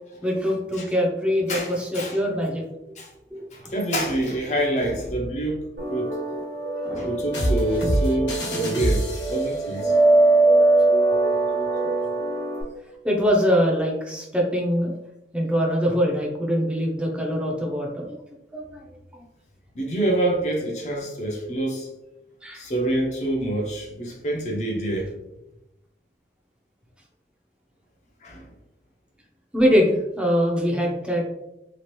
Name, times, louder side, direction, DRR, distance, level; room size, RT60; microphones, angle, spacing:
voice 1, 0.2-2.6 3.3-3.8 6.8-7.1 7.8-7.9 13.0-14.9 15.3-18.2 18.5-18.8 19.1-19.2 22.4-22.7 29.5-31.3, equal, 5° right, -2 dB, 0.6 m, -23 dB
voice 2, 1.5-2.2 3.0-3.1 3.5-5.6 5.9-6.2 6.9-9.9 19.8-21.9 22.5-25.1 28.2-28.4, right 1 dB, 40° left, 0 dB, 0.6 m, -26 dB
sound 1, 5.8-12.6, right 2 dB, 65° right, 0.8 m, -22 dB
sound 2, 7.3-9.7, equal, 90° left, 1.2 m, -25 dB
3.0 x 2.4 x 2.9 m, 0.91 s
head